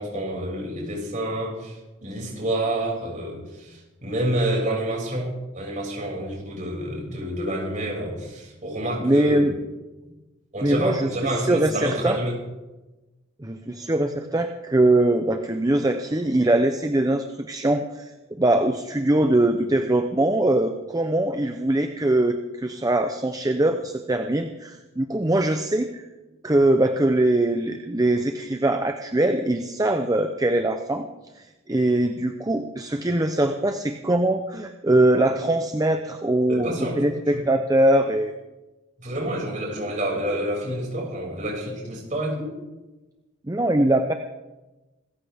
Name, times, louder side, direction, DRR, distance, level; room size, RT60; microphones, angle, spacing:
voice 1, 0.0-9.6 10.5-12.3 36.5-37.0 37.3-37.4 39.0-42.5, right 1 dB, 40° right, -2 dB, 6.4 m, -28 dB
voice 2, 9.0-9.5 10.6-12.2 13.4-18.1 18.4-26.0 26.4-31.1 31.4-38.3 43.5-44.1, right 1 dB, 20° right, 6 dB, 0.7 m, -22 dB
26.0 x 14.5 x 3.6 m, 1.1 s
head